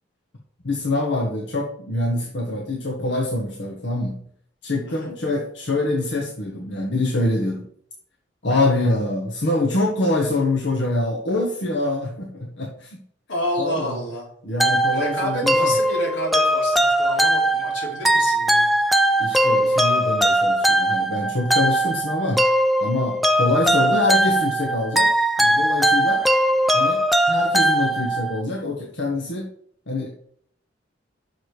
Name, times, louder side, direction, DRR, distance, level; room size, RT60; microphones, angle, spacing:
voice 1, 0.6-4.2 4.6-7.6 8.4-13.0 13.6-14.0 14.4-15.6 19.2-22.5 22.8-25.1 25.4-26.2 26.7-27.0 27.3-29.5 29.9-30.3, left 2 dB, 65° left, 0 dB, 1.1 m, -25 dB
voice 2, 13.3-14.3 14.9-18.7, equal, 85° left, -2 dB, 3.3 m, -29 dB
sound 1, 14.6-28.4, right 1 dB, ahead, 0.4 m, -20 dB
6.3 x 4.9 x 6.5 m, 0.63 s
head